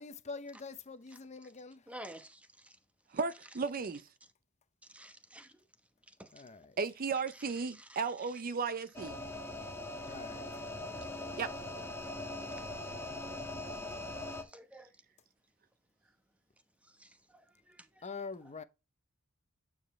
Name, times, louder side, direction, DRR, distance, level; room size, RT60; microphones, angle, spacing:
voice 1, 0.0-1.8 6.3-6.7 10.1-10.5 18.0-18.6, left 4 dB, 30° left, 0.7 m, -45 dB
voice 2, 1.9-2.7 4.9-5.5 6.2-6.3 7.7-8.0 10.0-10.2 11.2-11.3 14.5-14.9 17.0-17.1 17.7-18.1, right 1 dB, 5° right, 0.9 m, -50 dB
voice 3, 3.1-4.0 6.8-9.2 11.4-11.5, right 5 dB, 40° right, 0.5 m, -35 dB
sound 1, 8.9-14.4, left 2 dB, 10° left, 1.7 m, -41 dB
9.0 x 5.2 x 3.1 m
head